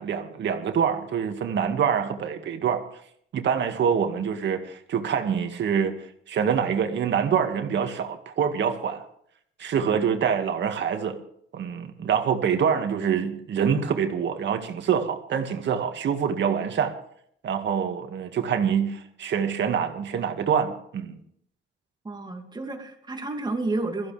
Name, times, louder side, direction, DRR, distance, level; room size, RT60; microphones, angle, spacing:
voice 1, 0.0-2.8 3.3-6.0 6.3-9.0 9.6-11.2 11.5-16.9 17.4-21.2, right 7 dB, 65° right, 6 dB, 2.0 m, -25 dB
voice 2, 22.0-24.1, right 2 dB, 20° right, 4 dB, 2.5 m, -30 dB
22.0 x 15.0 x 3.4 m, 0.67 s
cardioid pair, 90°, 20 cm